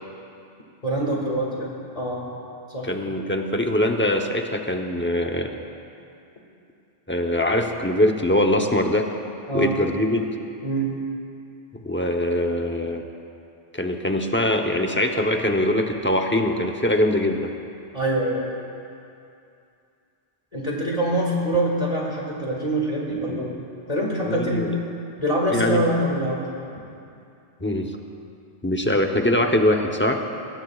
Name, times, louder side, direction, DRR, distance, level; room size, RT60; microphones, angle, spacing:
voice 1, 0.8-1.7 1.9-2.3 2.7-2.9 9.5-9.8 10.6-11.0 17.9-18.5 20.5-23.5 23.9-24.7 25.2-26.4, right 1 dB, 35° left, -3 dB, 2.2 m, -24 dB
voice 2, 2.8-5.6 7.1-9.1 9.5-10.3 11.7-13.1 13.7-17.5 24.2-24.7 25.5-25.8 27.6-28.0 28.6-30.2, left 1 dB, 10° left, 2 dB, 0.8 m, -22 dB
21.5 x 18.5 x 2.4 m, 2.6 s
omnidirectional pair, 1.1 m